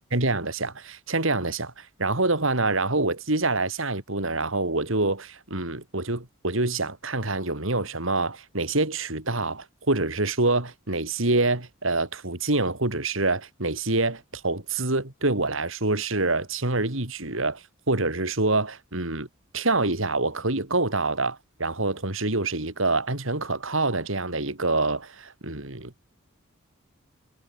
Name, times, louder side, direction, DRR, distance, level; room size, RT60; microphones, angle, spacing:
voice 1, 0.1-19.3 19.5-25.9, right 2 dB, 65° right, 3.4 m, -26 dB
head